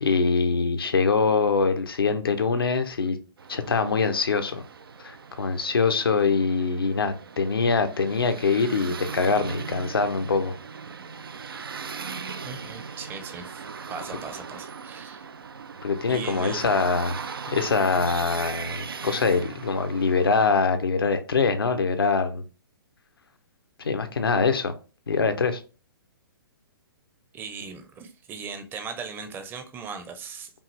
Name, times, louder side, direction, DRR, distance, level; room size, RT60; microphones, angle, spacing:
voice 1, 0.0-3.2 3.5-4.6 5.0-10.6 15.8-17.2 17.5-22.4 23.8-24.7 25.1-25.6, left 4 dB, 75° left, 0.8 m, -24 dB
sound 1, 3.4-20.3, right 5 dB, 75° right, 0.5 m, -39 dB
voice 2, 12.2-13.6 13.9-15.3 16.1-16.6 27.3-30.5, right 5 dB, 15° right, 0.7 m, -38 dB
5.3 x 2.5 x 3.2 m
figure-of-eight pair, 125°, 12 cm